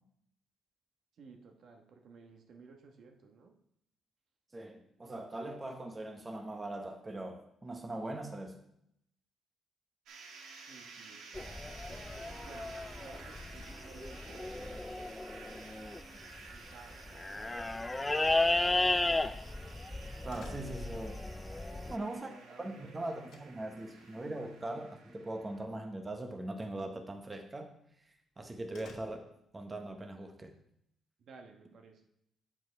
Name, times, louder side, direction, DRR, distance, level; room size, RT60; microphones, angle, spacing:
voice 1, 1.2-3.6 10.7-14.9 15.4-16.2 16.5-17.7 18.0-19.4 21.7-23.2 23.7-23.9 24.4-24.5 31.2-32.1, right 4 dB, 65° right, 4 dB, 1.2 m, -57 dB
voice 2, 4.5-8.6 20.2-21.2 21.9-22.3 22.6-27.7 28.4-29.3 29.5-30.5, right 2 dB, 25° right, 5 dB, 0.9 m, -41 dB
sound 1, 10.1-25.6, right 4 dB, 85° right, 1.5 m, -53 dB
sound 2, 11.3-21.9, left 2 dB, 15° left, 0.4 m, -34 dB
sound 3, 13.3-25.2 25.5-26.0 26.3-26.5 26.9-27.0 27.4-27.5 27.9-29.6, left 4 dB, 75° left, 1.3 m, -62 dB
7.7 x 6.0 x 4.5 m, 0.75 s
cardioid pair, 90°, 0 cm